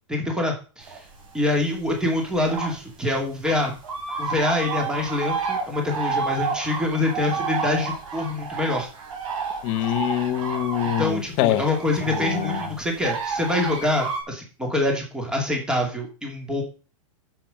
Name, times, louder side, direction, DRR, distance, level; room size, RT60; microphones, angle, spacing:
voice 1, 0.1-1.0 1.3-3.7 4.2-8.9 11.0-16.6, left 2 dB, 5° right, 2.6 m, -25 dB
sound 1, 0.9-1.3 1.7-2.8 3.0-3.1 3.4-14.2, right 5 dB, 70° right, 4.5 m, -30 dB
voice 2, 9.6-11.6 12.1-12.6, left 14 dB, 35° left, 1.0 m, -24 dB
10.0 x 7.5 x 5.2 m
supercardioid pair, 150°, 17 cm